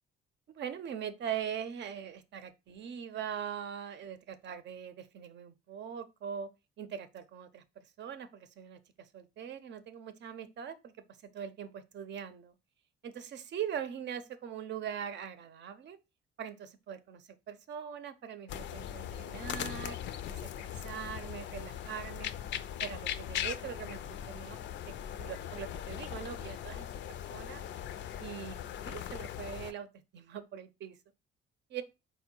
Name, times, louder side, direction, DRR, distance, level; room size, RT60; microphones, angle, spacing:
voice 1, 0.6-6.5 6.8-10.9 11.2-12.5 13.0-16.0 16.4-20.0 20.3-22.3 22.8-24.6 24.9-27.6 28.2-28.6 28.9-29.9 30.1-31.0 31.7-31.8, right 8 dB, 60° right, 0.6 m, -42 dB
sound 1, 18.5-29.7, left 10 dB, 65° left, 0.4 m, -40 dB
4.4 x 2.2 x 4.3 m
cardioid pair, 90°, 20 cm